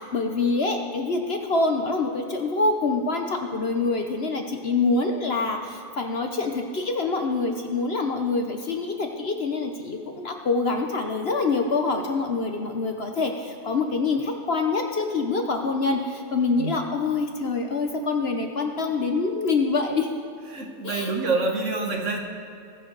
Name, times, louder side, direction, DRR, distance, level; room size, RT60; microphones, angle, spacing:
voice 1, 0.0-20.1 20.8-21.1, left 3 dB, 50° left, 4 dB, 1.0 m, -25 dB
voice 2, 20.5-22.2, right 3 dB, 55° right, 2 dB, 1.6 m, -26 dB
21.5 x 7.7 x 4.0 m, 2.6 s
omnidirectional pair, 1.6 m